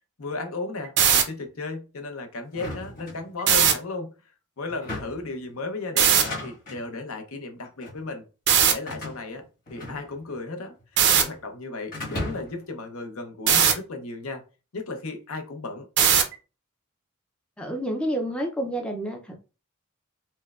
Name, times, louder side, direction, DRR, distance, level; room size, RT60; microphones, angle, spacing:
voice 1, 0.2-4.1 4.6-8.2 8.7-9.4 9.7-10.7 11.2-14.4 14.7-15.9, left 3 dB, 70° left, 0.7 m, -35 dB
sound 1, 0.8-1.2 3.4-3.7 6.0-6.2 8.5-8.7 11.0-11.2 13.5-13.7 16.0-16.3, right 8 dB, 55° right, 0.5 m, -18 dB
sound 2, 2.5-3.7 4.7-5.3 6.0-6.8 7.6-8.0 8.9-10.4 10.6-11.4 11.9-12.7, left 1 dB, 40° left, 1.4 m, -36 dB
voice 2, 17.6-19.4, right 1 dB, 5° left, 0.4 m, -29 dB
4.3 x 2.1 x 2.3 m
head